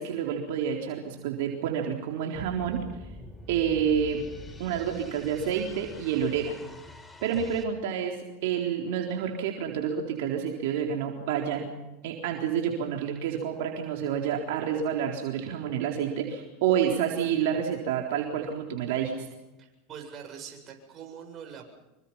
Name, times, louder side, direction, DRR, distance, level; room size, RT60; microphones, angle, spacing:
voice 1, 0.0-2.8 3.5-6.5 7.2-8.2 8.4-11.8 12.0-19.3, right 8 dB, 75° right, 1 dB, 4.0 m, -29 dB
sound 1, 2.3-7.6, left 2 dB, 10° left, 4.3 m, -46 dB
voice 2, 19.6-21.8, right 7 dB, 40° right, 3 dB, 7.7 m, -44 dB
27.0 x 24.5 x 5.8 m, 1.0 s
supercardioid pair, 110°, 0 cm